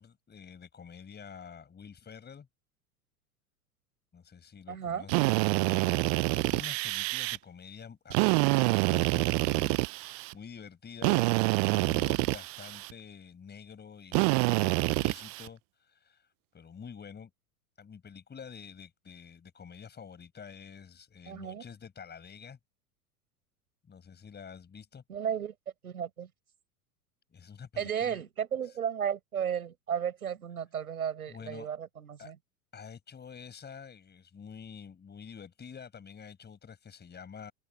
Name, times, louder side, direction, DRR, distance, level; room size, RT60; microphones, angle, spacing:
voice 1, 0.0-2.5 4.1-6.0 6.3-11.4 11.7-17.3 17.8-22.6 23.9-25.0 27.3-28.2 28.6-28.8 31.3-31.7 32.2-32.3 32.7-37.5, left 6 dB, 25° left, 6.0 m, -48 dB
voice 2, 4.7-5.1 21.3-21.6 25.1-25.5 25.8-26.3 27.8-32.4, right 8 dB, 80° right, 7.2 m, -34 dB
Drill, 5.1-7.4 8.1-10.3 11.0-12.9 14.1-15.5, right 35 dB, 45° right, 0.6 m, -27 dB
figure-of-eight pair, 85°, 43 cm